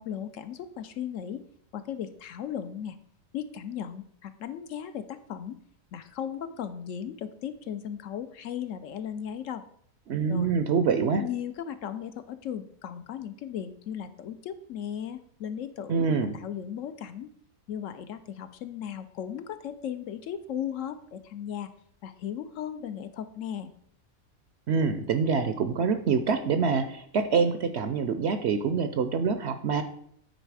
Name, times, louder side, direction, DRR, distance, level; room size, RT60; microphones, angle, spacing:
voice 1, 0.0-1.4 1.7-3.0 3.3-5.6 5.9-9.7 10.3-10.5 11.2-17.3 17.7-21.7 22.0-23.7, left 9 dB, 70° left, 10 dB, 0.9 m, -36 dB
voice 2, 10.1-11.2 15.9-16.4 24.7-29.8, right 5 dB, 65° right, 9 dB, 0.7 m, -25 dB
9.0 x 4.3 x 4.7 m, 0.66 s
omnidirectional pair, 1.5 m